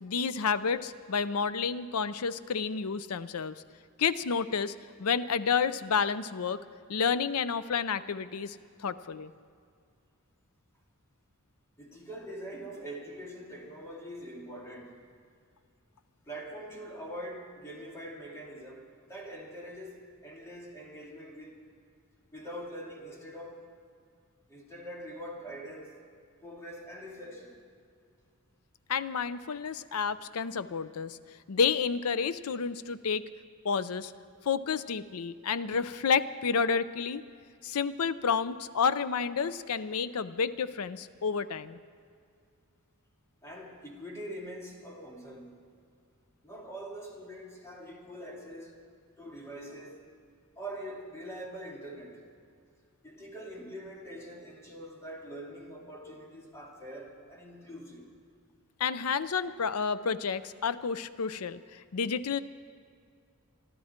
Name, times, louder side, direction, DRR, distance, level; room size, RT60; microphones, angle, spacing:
voice 1, 0.0-3.6 4.0-4.7 5.0-6.6 6.9-8.6 8.8-9.3 28.9-31.2 31.5-33.2 33.6-34.1 34.5-37.2 37.6-41.8 58.8-62.4, left 6 dB, 80° left, 0.6 m, -30 dB
voice 2, 11.8-15.1 16.3-21.7 22.3-23.6 24.5-25.9 26.4-27.6 43.4-45.7 46.4-48.8 49.2-50.1 50.6-52.3 53.0-58.1, equal, 15° left, 2.4 m, -44 dB
25.0 x 12.5 x 4.4 m
head